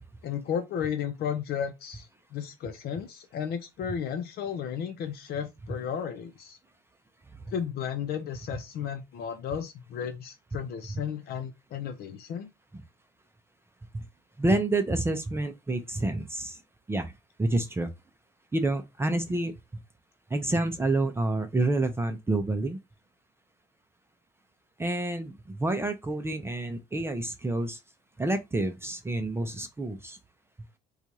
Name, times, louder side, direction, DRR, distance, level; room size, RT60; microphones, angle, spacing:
voice 1, 0.2-6.6 7.5-12.5, left 8 dB, 65° left, 0.7 m, -34 dB
voice 2, 14.4-16.6 16.9-17.1 17.4-17.9 18.5-19.5 20.3-22.8 24.8-27.8 28.2-30.2, right 2 dB, 15° right, 0.5 m, -28 dB
4.4 x 2.4 x 2.7 m
cardioid pair, 110°, 17 cm